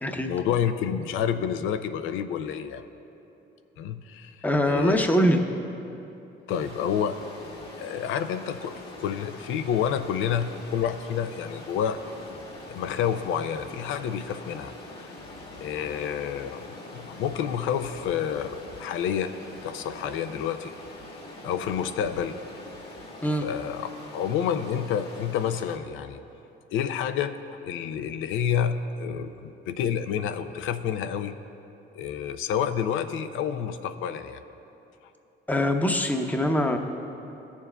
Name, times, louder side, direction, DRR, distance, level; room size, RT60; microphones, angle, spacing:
voice 1, 0.3-2.8 3.8-4.4 4.7-5.1 6.5-7.2 7.8-8.7 9.0-12.1 12.7-15.1 15.6-19.3 19.6-20.7 21.4-22.4 23.4-26.2 26.7-27.4 27.6-31.4 31.9-34.4, left 8 dB, 85° left, 10 dB, 0.4 m, -29 dB
voice 2, 4.4-5.4 23.2-23.5 35.5-36.8, equal, 10° left, 4 dB, 0.7 m, -23 dB
Stream, 6.5-25.8, left 2 dB, 55° left, 1.7 m, -44 dB
16.5 x 7.1 x 2.2 m, 3.0 s
cardioid pair, 90°, 20 cm